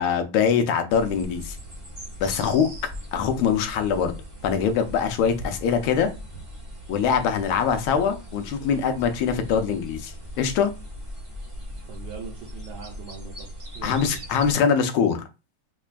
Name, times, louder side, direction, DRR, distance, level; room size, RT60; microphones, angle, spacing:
voice 1, 0.0-1.6 2.2-2.7 3.1-4.1 4.4-6.1 6.9-10.7 13.8-15.2, left 7 dB, 85° left, 6 dB, 1.5 m, -23 dB
sound 1, 0.9-14.5, equal, 30° right, 0.5 m, -39 dB
voice 2, 11.9-13.5 13.7-14.2, right 5 dB, 75° right, -2 dB, 1.5 m, -41 dB
5.3 x 2.2 x 2.4 m, 0.28 s
omnidirectional pair, 2.3 m